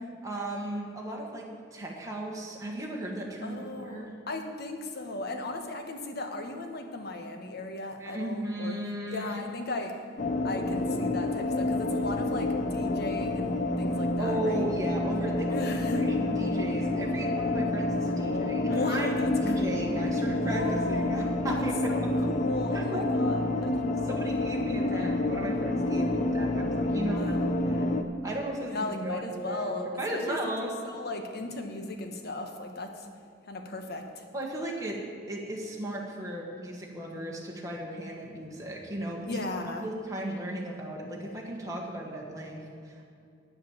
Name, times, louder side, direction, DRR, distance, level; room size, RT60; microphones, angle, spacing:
voice 1, 0.0-4.1 8.0-9.5 14.2-15.7 15.9-22.1 22.7-23.1 24.1-27.3 27.6-27.8 28.2-30.7 34.3-35.0 35.3-39.4 39.8-43.1, right 1 dB, 20° right, -2 dB, 1.5 m, -35 dB
voice 2, 3.4-8.8 9.1-10.0 10.4-14.7 15.5-16.1 18.1-19.7 20.3-21.3 21.9-23.8 24.8-25.0 27.0-28.0 28.7-33.1 33.5-34.3 38.3-38.5 39.3-39.9, left 2 dB, 60° left, 5 dB, 1.2 m, -36 dB
sound 1, 10.2-28.0, left 2 dB, 45° left, 0.7 m, -28 dB
9.3 x 7.8 x 7.4 m, 2.4 s
head